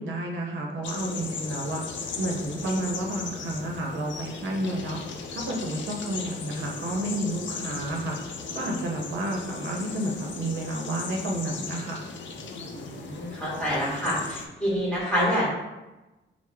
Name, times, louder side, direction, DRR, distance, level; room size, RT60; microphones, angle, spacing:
voice 1, 0.0-1.8 2.2-5.0 5.3-8.2 8.5-12.0, right 1 dB, 80° right, 0 dB, 0.6 m, -30 dB
sound 1, 0.8-14.5, left 4 dB, 75° left, 0.5 m, -37 dB
voice 2, 12.7-15.5, equal, 5° left, -7 dB, 1.4 m, -27 dB
4.7 x 2.0 x 3.4 m, 1.1 s
wide cardioid pair, 120°, 19 cm